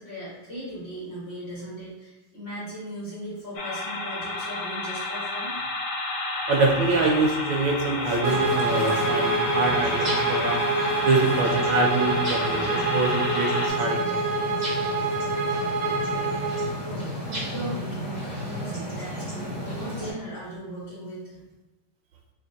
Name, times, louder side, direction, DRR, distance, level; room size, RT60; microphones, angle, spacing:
voice 1, 0.0-5.6 16.8-21.4, equal, 35° left, -9 dB, 1.8 m, -38 dB
sound 1, 3.5-13.7, left 2 dB, 60° left, 0.7 m, -31 dB
voice 2, 6.5-10.6 11.0-14.2, right 3 dB, 90° right, 2 dB, 1.4 m, -25 dB
sound 2, 8.2-20.1, equal, 25° right, 1.2 m, -34 dB
Bowed string instrument, 8.2-16.7, right 2 dB, 65° right, 0.9 m, -26 dB
3.4 x 2.8 x 4.0 m, 1.1 s
omnidirectional pair, 1.9 m